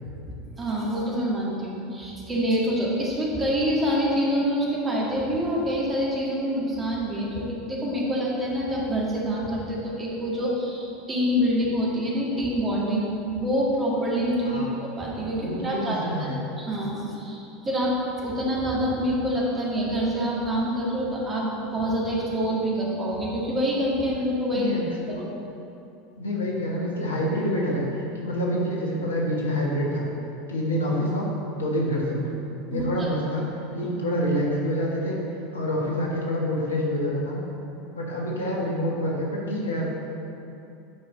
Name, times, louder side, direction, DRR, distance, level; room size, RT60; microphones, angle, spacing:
voice 1, 0.6-16.3 16.6-24.7 25.1-25.2 32.7-33.1 33.8-33.9, equal, 20° right, -5 dB, 1.9 m, -26 dB
voice 2, 14.4-14.7 15.3-16.4 24.5-24.8 25.1-25.2 26.2-27.8 28.1-30.1 30.5-32.4 32.7-33.5 33.7-35.2 35.5-37.4 37.9-39.9, equal, 75° left, -3 dB, 1.4 m, -27 dB
9.3 x 5.1 x 4.1 m, 2.8 s
figure-of-eight pair, 75°, 0 cm